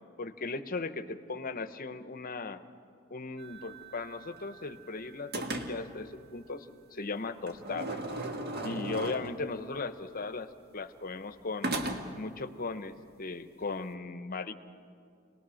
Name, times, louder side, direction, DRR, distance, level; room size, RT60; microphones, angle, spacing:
voice 1, 0.2-2.6 3.1-8.0 8.6-11.8 12.2-14.5, left 3 dB, 45° left, 11 dB, 0.8 m, -37 dB
sound 1, 3.4-4.9 5.3-6.0 7.5-9.6 11.6-12.3, right 1 dB, 50° right, 1.6 m, -37 dB
26.5 x 19.5 x 6.4 m, 2.5 s
head